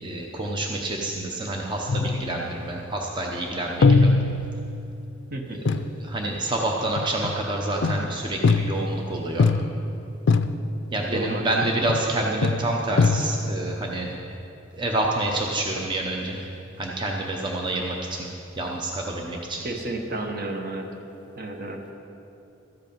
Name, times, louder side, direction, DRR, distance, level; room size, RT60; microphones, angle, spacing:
voice 1, 0.0-4.1 5.5-9.5 10.9-14.1 14.7-16.5 16.8-18.3 18.5-19.6, right 2 dB, 25° right, 0 dB, 0.7 m, -28 dB
sound 1, 1.9-2.7 3.8-5.0 5.7-6.0 7.0-7.4 7.8-9.0 9.4-10.0 10.3-10.8 11.6-12.1 12.4-13.6, left 3 dB, 65° left, 0.4 m, -22 dB
voice 2, 5.3-5.6 11.1-11.5 19.6-20.9 21.3-21.9, right 2 dB, 50° right, 3 dB, 1.1 m, -31 dB
13.5 x 8.1 x 5.3 m, 2.8 s
head